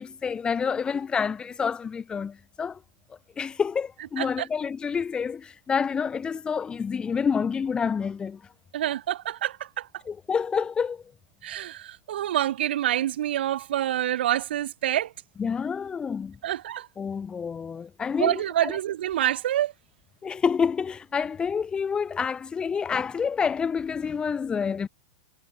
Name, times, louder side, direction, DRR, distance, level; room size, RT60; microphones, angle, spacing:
voice 1, 0.0-2.8 3.4-8.4 10.1-11.0 15.4-16.4 17.0-18.8 20.2-24.9, left 6 dB, 15° left, 7.4 m, -28 dB
voice 2, 8.7-9.9 11.4-15.1 16.4-16.9 18.2-19.7, right 12 dB, 75° right, 7.5 m, -27 dB
supercardioid pair, 145°, 6 cm